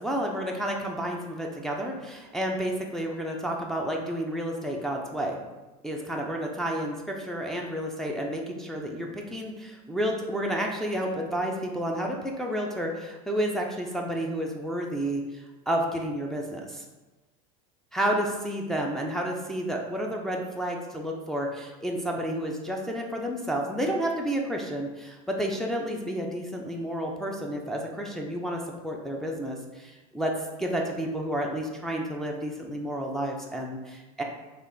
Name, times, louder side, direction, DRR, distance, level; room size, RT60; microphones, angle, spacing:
voice 1, 0.0-5.4 5.8-15.2 15.7-16.9 17.9-30.3 30.6-34.2, equal, ahead, -1 dB, 0.4 m, -30 dB
3.3 x 2.4 x 3.7 m, 1.2 s
supercardioid pair, 120°, 19 cm